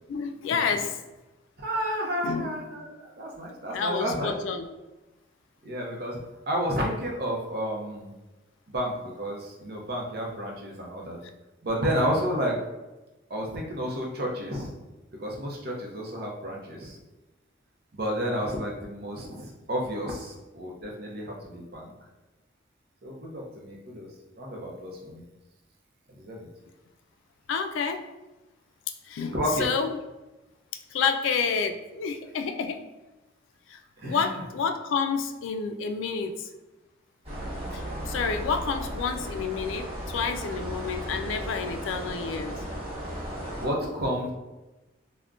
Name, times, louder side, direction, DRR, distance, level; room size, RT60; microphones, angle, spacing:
voice 1, 0.1-1.0 2.2-2.5 3.7-4.7 27.5-28.0 29.1-29.9 30.9-32.8 33.7-36.5 37.7-42.6, left 5 dB, 90° left, 6 dB, 0.3 m, -29 dB
voice 2, 1.6-4.3 5.6-6.2 6.5-8.1 8.7-11.2 11.6-12.6 13.3-14.7 15.2-17.0 17.9-21.9 23.0-24.1 24.4-25.2 26.2-26.5 29.3-29.6 34.0-34.4 43.6-44.3, equal, 55° right, -1 dB, 0.6 m, -31 dB
sound 1, 37.2-43.7, equal, 30° right, 1.0 m, -35 dB
3.5 x 2.1 x 2.4 m, 1.1 s
head